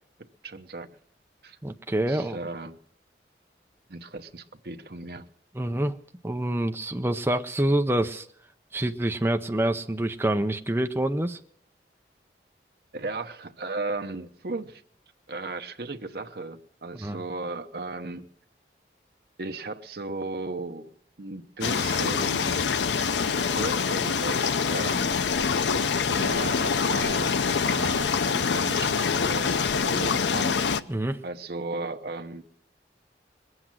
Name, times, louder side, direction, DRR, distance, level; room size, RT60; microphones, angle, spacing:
voice 1, 0.4-0.9 1.4-1.6 2.1-2.8 3.9-5.3 12.9-14.8 15.3-18.3 19.4-22.7 23.2-25.2 26.1-30.6 31.2-32.4, right 3 dB, 60° right, 7 dB, 0.9 m, -36 dB
voice 2, 1.6-2.4 5.5-6.0 6.2-8.3 8.7-11.4 17.0-17.2 30.9-31.2, right 1 dB, 15° right, 6 dB, 0.6 m, -26 dB
sound 1, 21.6-30.8, left 5 dB, 85° left, 0.6 m, -25 dB
21.0 x 8.0 x 7.5 m, 0.67 s
head